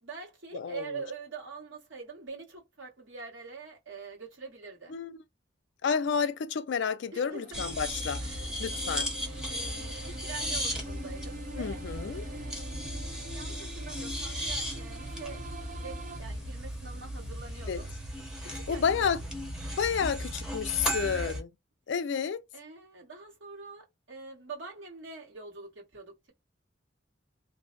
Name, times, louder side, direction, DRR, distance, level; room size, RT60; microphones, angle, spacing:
voice 1, 0.0-4.9 7.1-7.6 8.2-17.9 18.5-19.1 21.0-21.4 22.1-26.3, right 4 dB, 75° right, 1.3 m, -45 dB
voice 2, 0.5-0.8 4.9-5.2 5.8-8.2 8.6-9.1 11.6-12.2 17.7-17.8 18.7-19.2 19.8-21.5 21.9-22.4, left 6 dB, 65° left, 0.4 m, -30 dB
sound 1, 7.2-16.2, right 1 dB, 45° right, 0.5 m, -46 dB
sound 2, 7.5-21.4, equal, 5° right, 0.7 m, -36 dB
2.5 x 2.0 x 2.4 m
head